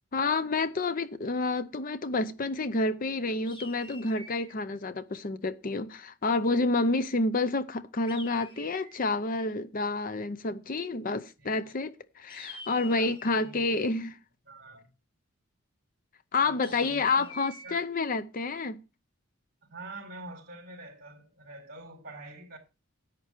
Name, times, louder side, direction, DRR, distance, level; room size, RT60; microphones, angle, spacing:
voice 1, 0.1-14.2 16.3-18.8, left 3 dB, 40° left, 0.6 m, -29 dB
sound 1, 3.4-4.6 8.1-9.1 12.3-13.6 16.6-17.8, left 2 dB, 25° left, 1.6 m, -47 dB
voice 2, 11.4-11.8 13.0-13.8 14.4-14.9 16.4-17.3 17.6-17.9 19.6-22.6, right 2 dB, 45° right, 4.1 m, -46 dB
11.0 x 8.4 x 4.4 m
head